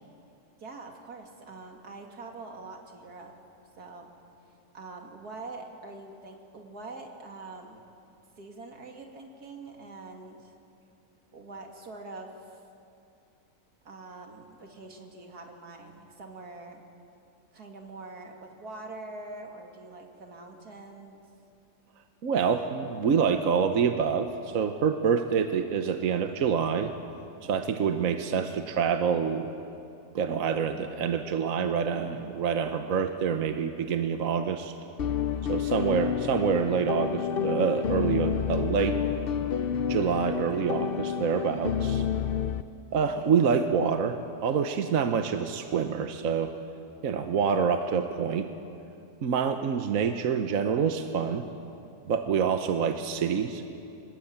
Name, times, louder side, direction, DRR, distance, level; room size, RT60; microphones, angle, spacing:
voice 1, 0.6-3.3 3.8-4.1 4.7-7.8 8.4-10.5 11.3-12.6 13.8-16.8 17.5-21.2 35.7-36.0 42.9-43.3, right 3 dB, 85° right, 2 dB, 2.9 m, -44 dB
voice 2, 22.2-26.9 27.4-29.5 30.1-34.7 35.5-39.0 39.9-42.0 42.9-46.5 47.0-48.5 49.2-51.4 52.1-53.7, right 6 dB, 65° right, 7 dB, 1.3 m, -27 dB
sound 1, 35.0-42.6, left 8 dB, 55° left, 0.7 m, -29 dB
24.5 x 21.0 x 8.7 m, 2.6 s
omnidirectional pair, 1.6 m